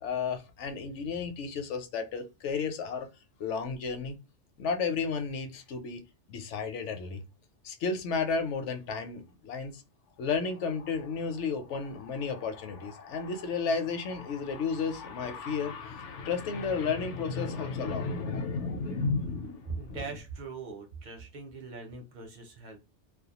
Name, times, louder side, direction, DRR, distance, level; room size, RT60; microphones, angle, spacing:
voice 1, 0.0-3.1 3.4-4.1 4.6-6.0 6.3-7.2 7.6-9.8 10.2-20.0, left 5 dB, 80° left, 0.9 m, -32 dB
voice 2, 19.7-22.8, right 4 dB, 50° right, 0.7 m, -41 dB
2.3 x 2.2 x 2.8 m
omnidirectional pair, 1.2 m